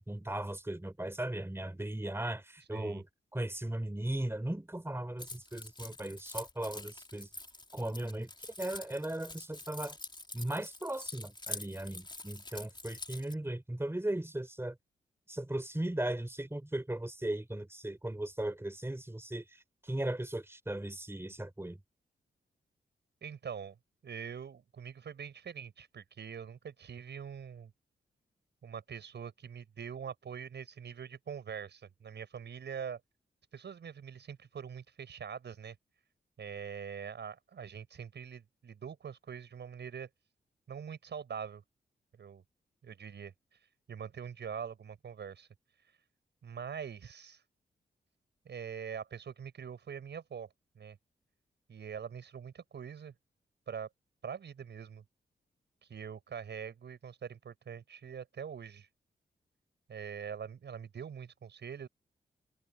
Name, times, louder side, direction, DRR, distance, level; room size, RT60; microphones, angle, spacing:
voice 1, 0.0-3.1 3.3-7.3 7.7-10.0 10.3-14.8 15.3-21.8, right 1 dB, 15° right, 3.6 m, -37 dB
voice 2, 2.7-3.0 23.2-23.8 24.0-27.7 28.6-33.0 33.5-35.8 36.4-40.1 40.7-41.6 42.2-42.4 42.8-43.3 43.9-45.5 46.4-47.4 48.5-50.5 50.8-51.0 51.7-53.1 53.7-53.9 54.2-55.0 55.8-58.9 59.9-61.9, right 7 dB, 70° right, 7.2 m, -43 dB
Keys jangling, 5.2-13.3, left 2 dB, 25° left, 3.7 m, -46 dB
supercardioid pair, 40°, 18 cm